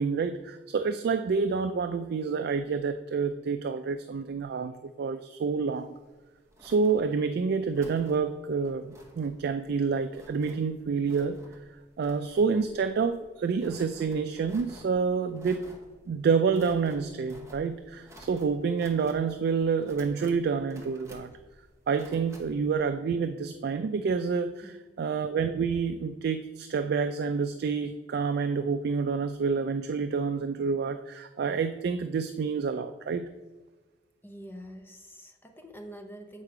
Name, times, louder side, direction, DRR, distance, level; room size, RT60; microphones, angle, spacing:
voice 1, 0.0-6.0 6.6-11.4 12.0-15.7 16.1-21.3 21.9-33.3, right 5 dB, 60° right, 9 dB, 0.3 m, -28 dB
sound 1, 6.0-22.7, equal, 15° right, 1.0 m, -53 dB
voice 2, 34.2-36.4, equal, 10° left, 4 dB, 0.6 m, -45 dB
8.2 x 4.5 x 4.8 m, 1.3 s
head